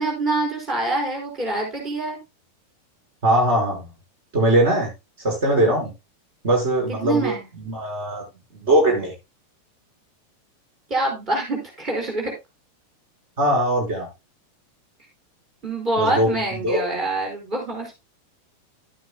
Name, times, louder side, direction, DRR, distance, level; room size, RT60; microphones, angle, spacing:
voice 1, 0.0-2.2 7.0-7.4 10.9-12.3 15.6-17.9, right 2 dB, 30° right, 0 dB, 4.9 m, -25 dB
voice 2, 3.2-3.9 4.3-4.9 5.2-5.9 6.4-8.2 8.6-9.1 13.4-14.1 16.0-16.8, right 1 dB, 50° right, 1 dB, 5.0 m, -21 dB
12.5 x 9.4 x 2.2 m, 0.23 s
figure-of-eight pair, 90°, 0 cm